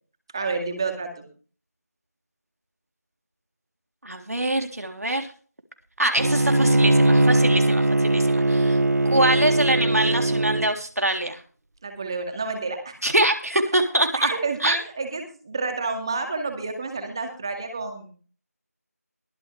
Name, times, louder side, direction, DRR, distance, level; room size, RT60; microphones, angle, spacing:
voice 1, 0.3-1.3 11.8-12.9 14.1-18.2, right 4 dB, 15° right, 5 dB, 2.2 m, -29 dB
voice 2, 4.0-5.3 6.0-8.8 9.1-11.4 13.0-14.3 14.6-14.8, right 1 dB, 70° right, 4 dB, 3.5 m, -24 dB
Bowed string instrument, 6.2-10.7, right 2 dB, 85° right, 0.8 m, -20 dB
22.5 x 7.8 x 3.4 m, 0.38 s
figure-of-eight pair, 175°, 9 cm